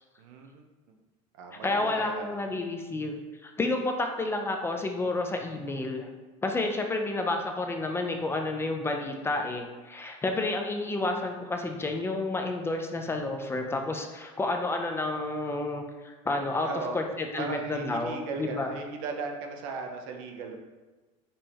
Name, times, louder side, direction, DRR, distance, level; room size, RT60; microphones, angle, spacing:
voice 1, 0.2-0.6 0.9-1.0 1.3-2.6 16.5-17.0 17.4-20.6, right 4 dB, 80° right, 3 dB, 0.7 m, -37 dB
voice 2, 1.6-6.1 6.4-16.7 16.9-18.8, left 2 dB, 15° left, 4 dB, 0.4 m, -30 dB
5.2 x 2.8 x 3.4 m, 1.2 s
supercardioid pair, 125°, 17 cm